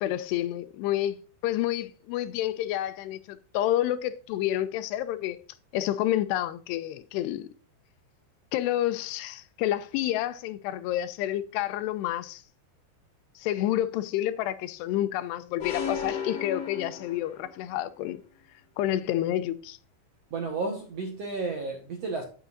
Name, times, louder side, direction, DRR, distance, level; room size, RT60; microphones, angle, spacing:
voice 1, 0.0-1.2 1.4-5.4 5.7-7.5 8.5-12.4 13.4-18.2 18.8-19.8, left 13 dB, 90° left, 2.8 m, -29 dB
sound 1, 15.6-17.6, left 7 dB, 55° left, 2.5 m, -34 dB
voice 2, 20.3-22.2, right 3 dB, 60° right, 1.7 m, -32 dB
9.0 x 8.8 x 2.5 m
omnidirectional pair, 4.8 m